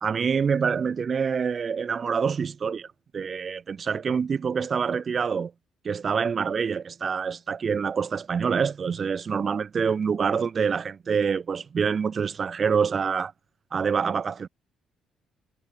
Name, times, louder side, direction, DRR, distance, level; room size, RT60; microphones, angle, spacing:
voice 1, 0.0-2.9 3.1-5.5 5.8-13.3 13.7-14.5, right 6 dB, 45° right, 0.3 m, -26 dB
hypercardioid pair, 50°, 0 cm